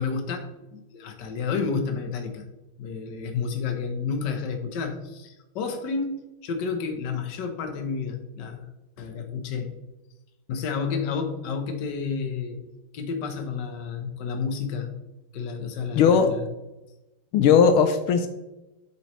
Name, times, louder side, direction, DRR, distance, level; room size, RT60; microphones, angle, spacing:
voice 1, 0.0-2.4 2.8-8.7 9.0-9.7 10.5-12.6 12.9-14.9 15.3-16.5, left 5 dB, 60° left, 6 dB, 1.5 m, -30 dB
voice 2, 16.0-16.3 17.3-18.3, left 6 dB, 80° left, 8 dB, 1.5 m, -18 dB
8.4 x 6.2 x 3.1 m, 1.0 s
omnidirectional pair, 2.4 m